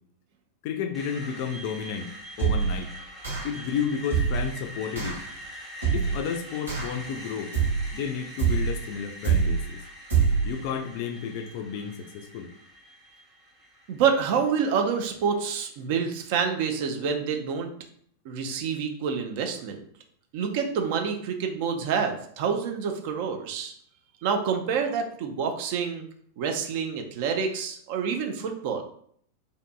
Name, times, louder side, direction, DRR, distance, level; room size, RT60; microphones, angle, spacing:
voice 1, 0.6-2.1 2.4-2.9 3.4-5.2 5.9-7.5 7.9-9.8 10.4-12.5, left 7 dB, 45° left, 6 dB, 0.3 m, -32 dB
Screech, 0.9-14.9, equal, 15° right, 1.0 m, -44 dB
sound 1, 2.4-2.8 3.2-3.6 4.1-4.5 5.0-5.2 5.8-6.2 6.7-7.1 7.5-7.9 8.4-8.8 9.2-9.7 10.1-10.5, right 6 dB, 75° right, 1.0 m, -25 dB
voice 2, 13.9-17.7 18.3-19.8 20.3-23.7 24.2-26.1 26.4-28.8, right 6 dB, 50° right, 4 dB, 0.4 m, -27 dB
2.6 x 2.6 x 2.2 m, 0.63 s
figure-of-eight pair, 90°, 0 cm